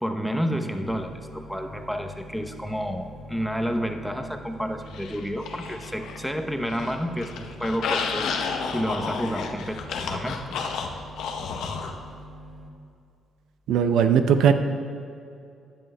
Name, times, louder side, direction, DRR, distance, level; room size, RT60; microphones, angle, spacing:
voice 1, 0.0-8.4 8.7-10.5, equal, ahead, 4 dB, 0.7 m, -30 dB
sound 1, 0.8-12.7, equal, 40° right, 1.0 m, -45 dB
sound 2, 4.9-6.3 6.6-11.9, left 5 dB, 85° left, 0.7 m, -31 dB
voice 2, 13.7-14.5, right 7 dB, 80° right, 8 dB, 0.5 m, -18 dB
14.5 x 10.0 x 2.2 m, 2.5 s
cardioid pair, 90°, 0 cm